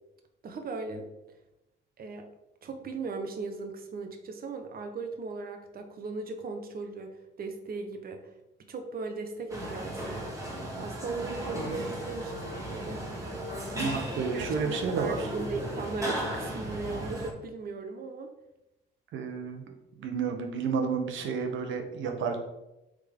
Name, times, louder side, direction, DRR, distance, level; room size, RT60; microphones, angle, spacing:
voice 1, 0.4-1.1 2.0-2.3 2.6-8.3 8.7-10.3 10.8-13.1 14.3-18.3, right 3 dB, 50° right, 5 dB, 0.9 m, -37 dB
sound 1, 9.5-17.3, right 1 dB, 15° right, 1.9 m, -36 dB
voice 2, 13.8-15.2 19.1-19.6 20.0-22.4, right 5 dB, 75° right, 4 dB, 0.9 m, -31 dB
8.1 x 3.7 x 3.5 m, 0.93 s
cardioid pair, 90°, 20 cm